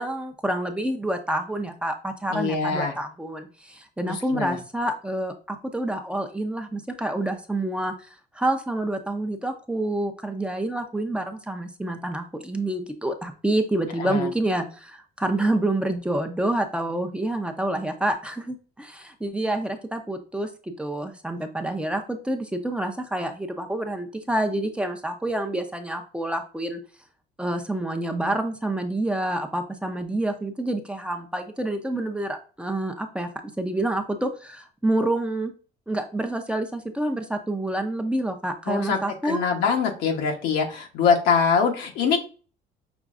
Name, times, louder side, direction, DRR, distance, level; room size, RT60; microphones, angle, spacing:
voice 1, 0.0-8.1 8.3-26.8 27.4-33.3 33.6-35.5 35.9-39.4, right 1 dB, 5° right, 5 dB, 0.6 m, -28 dB
voice 2, 2.3-2.9 4.0-4.6 14.0-14.3 38.7-39.0 39.2-42.2, left 5 dB, 85° left, 2 dB, 1.0 m, -23 dB
5.9 x 3.1 x 2.5 m, 0.37 s
cardioid pair, 110°, 17 cm